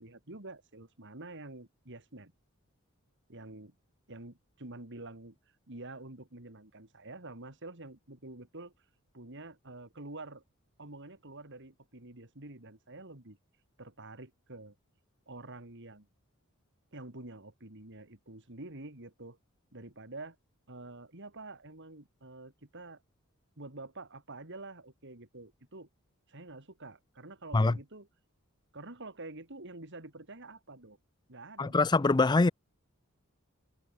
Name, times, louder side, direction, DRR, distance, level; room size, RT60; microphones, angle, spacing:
voice 1, 0.0-2.3 3.3-3.7 4.1-5.4 5.7-8.7 9.1-10.4 10.8-13.4 13.8-14.7 15.3-16.1 16.9-19.4 19.7-20.4 20.7-23.0 23.6-25.9 26.3-28.1 28.7-31.0 31.3-31.8, right 2 dB, 60° right, 3.6 m, -47 dB
voice 2, 31.6-32.5, left 3 dB, 20° left, 0.4 m, -24 dB
head